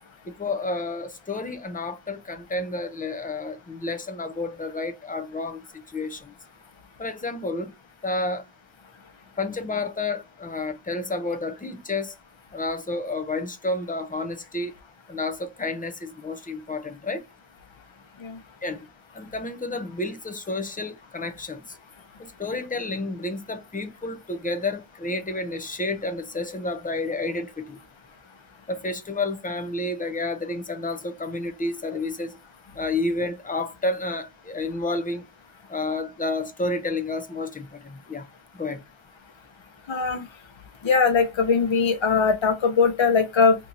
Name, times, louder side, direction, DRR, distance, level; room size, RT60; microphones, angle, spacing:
voice 1, 0.2-6.3 7.0-7.7 8.0-8.5 9.4-12.1 12.5-14.7 15.1-17.3 18.6-18.9 19.1-21.8 22.2-27.8 28.7-32.4 32.7-35.2 35.7-38.3 38.5-38.8, left 2 dB, 20° left, 0.5 m, -30 dB
voice 2, 39.9-40.2 40.8-43.6, left 5 dB, 70° left, 1.0 m, -20 dB
2.9 x 2.6 x 3.8 m
wide cardioid pair, 105°, 47 cm